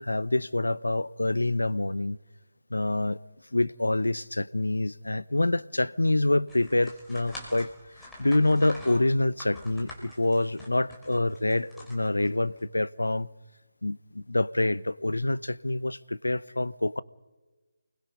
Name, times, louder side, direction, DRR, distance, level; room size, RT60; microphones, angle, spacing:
voice 1, 0.0-2.2 2.7-3.2 3.5-7.7 8.2-13.3 13.8-17.0, left 2 dB, 70° left, 0.7 m, -26 dB
sound 1, 6.5-12.6, left 1 dB, 5° left, 3.6 m, -46 dB
29.5 x 21.0 x 5.4 m
figure-of-eight pair, 150°, 0 cm